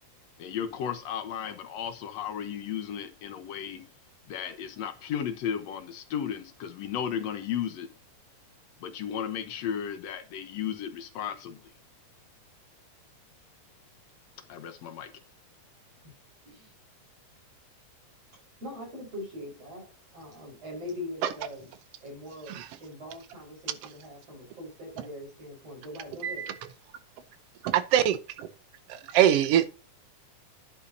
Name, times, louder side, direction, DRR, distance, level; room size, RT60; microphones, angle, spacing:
voice 1, 0.4-3.8 4.3-7.9 8.8-11.6 14.5-15.1, left 8 dB, 65° left, 1.9 m, -34 dB
voice 2, 18.6-21.7 22.0-26.4, left 1 dB, 45° right, 5.9 m, -42 dB
voice 3, 26.2-26.5 27.6-28.5 28.9-29.7, right 10 dB, 80° right, 1.4 m, -24 dB
11.0 x 6.8 x 2.7 m
omnidirectional pair, 3.7 m